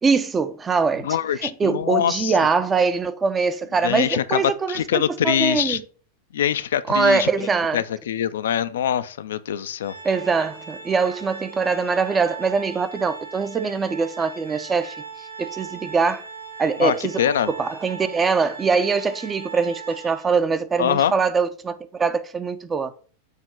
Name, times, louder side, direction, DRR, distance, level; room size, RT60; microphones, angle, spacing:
voice 1, 0.0-1.2 1.4-5.8 6.9-7.8 10.0-15.0 15.4-16.2 16.6-22.9, right 5 dB, 20° right, 0.5 m, -23 dB
voice 2, 1.0-2.3 3.8-5.8 6.3-7.3 7.7-9.9 16.8-17.5 20.8-21.1, left 10 dB, 60° left, 0.3 m, -23 dB
Organ, 9.8-20.5, right 5 dB, 85° right, 1.3 m, -39 dB
6.5 x 2.9 x 4.9 m
figure-of-eight pair, 90°, 0 cm